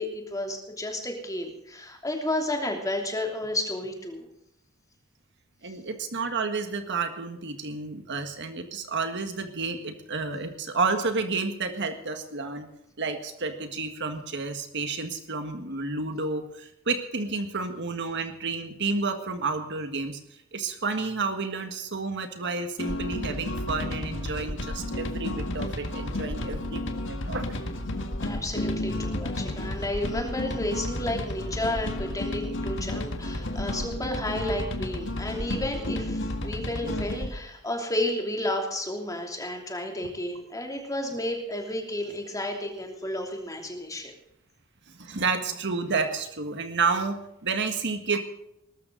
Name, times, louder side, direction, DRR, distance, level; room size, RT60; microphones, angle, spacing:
voice 1, 0.0-4.3 28.2-44.1, left 1 dB, 15° left, 2 dB, 3.0 m, -32 dB
voice 2, 5.6-12.7 13.0-20.2 20.5-27.6 29.1-29.2 36.8-36.9 44.9-47.2 47.4-48.2, right 4 dB, 60° right, 7 dB, 1.6 m, -30 dB
sound 1, 22.8-37.3, left 1 dB, 60° left, 1.8 m, -32 dB
20.5 x 13.0 x 4.0 m, 0.81 s
head